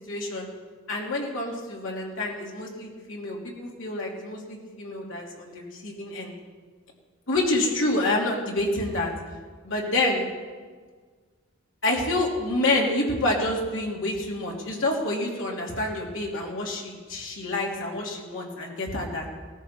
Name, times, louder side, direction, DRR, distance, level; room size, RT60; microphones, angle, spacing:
voice 1, 0.1-0.5 0.9-6.3 7.3-9.1 9.6-10.2 11.8-19.2, left 2 dB, 70° left, -2 dB, 3.2 m, -28 dB
18.0 x 14.0 x 4.5 m, 1.5 s
head